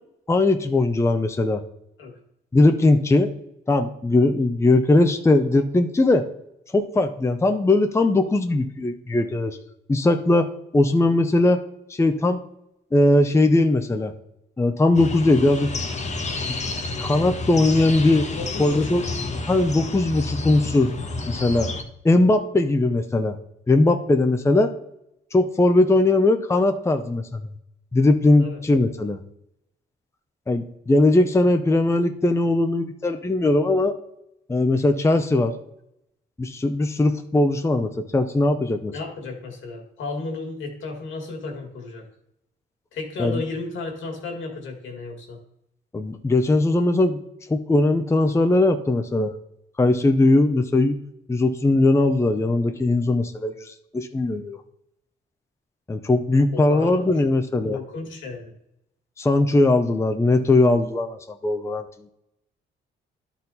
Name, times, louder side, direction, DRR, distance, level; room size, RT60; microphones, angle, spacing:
voice 1, 0.3-1.6 2.5-3.3 3.7-6.3 6.7-9.6 9.9-11.6 11.9-12.4 12.9-14.1 14.6-15.7 17.0-18.3 18.6-19.0 19.5-20.9 21.3-21.7 22.0-23.4 23.7-24.7 25.3-27.5 27.9-29.2 30.5-34.0 34.5-35.5 36.4-38.9 43.2-43.4 45.9-47.2 47.5-49.4 49.8-51.0 51.3-54.6 55.9-57.8 59.2-62.1, left 2 dB, 15° left, 6 dB, 0.6 m, -20 dB
sound 1, 14.9-21.8, left 3 dB, 35° left, 1.1 m, -30 dB
voice 2, 18.4-18.9 28.4-28.6 38.9-42.1 42.9-45.4 56.5-57.0 57.6-58.5, left 3 dB, 75° left, 2 dB, 2.0 m, -33 dB
11.5 x 4.4 x 4.1 m, 0.78 s
cardioid pair, 90°, 20 cm